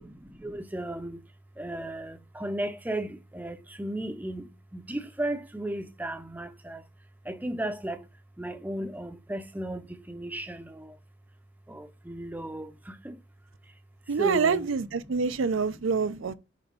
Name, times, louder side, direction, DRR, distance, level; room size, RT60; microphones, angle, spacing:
voice 1, 0.4-1.2 1.6-2.1 2.4-3.1 3.4-4.4 4.9-6.8 7.3-8.0 8.4-9.8 10.1-10.6 12.1-12.6 14.2-14.7, right 1 dB, 10° right, 0.6 m, -34 dB
voice 2, 14.1-16.3, right 5 dB, 85° right, 0.5 m, -26 dB
8.2 x 3.4 x 5.2 m
head